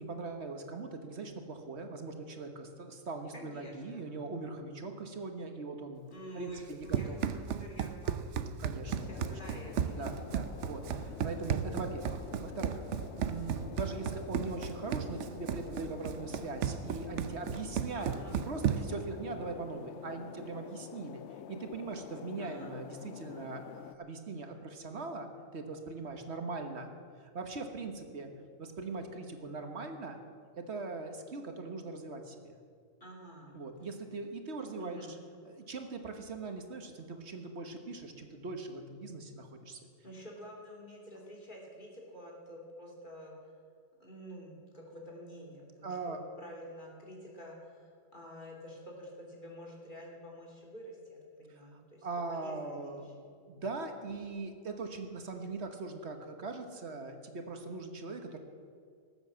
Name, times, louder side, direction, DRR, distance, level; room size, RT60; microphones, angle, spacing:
voice 1, 0.0-6.1 6.3-7.2 8.6-9.3 9.9-12.8 13.2-21.2 21.5-26.9 27.2-28.3 28.6-30.2 30.6-32.6 33.5-35.0 35.4-39.8 45.8-46.2 52.0-53.1 53.5-58.4, right 3 dB, 70° right, 5 dB, 1.6 m, -41 dB
voice 2, 3.3-4.0 6.1-8.4 9.0-10.2 17.9-18.4 22.4-22.7 33.0-33.6 34.6-35.1 40.0-43.3 44.0-53.1, equal, 45° left, -2 dB, 3.2 m, -49 dB
Run, 6.6-19.0, right 8 dB, 90° right, 1.0 m, -35 dB
sound 1, 8.9-24.0, left 10 dB, 80° left, 0.9 m, -48 dB
19.0 x 7.9 x 7.4 m, 2.2 s
omnidirectional pair, 1.2 m